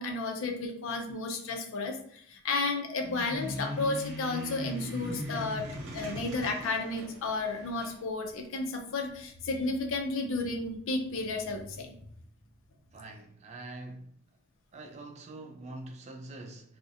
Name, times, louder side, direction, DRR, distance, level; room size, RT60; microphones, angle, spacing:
voice 1, 0.0-5.7 5.9-11.9, left 3 dB, 65° left, 0.4 m, -32 dB
sound 1, 3.0-8.0, equal, 60° right, 0.7 m, -39 dB
voice 2, 12.9-14.2 14.7-16.8, right 2 dB, 30° right, 0.3 m, -44 dB
2.4 x 2.0 x 2.7 m
head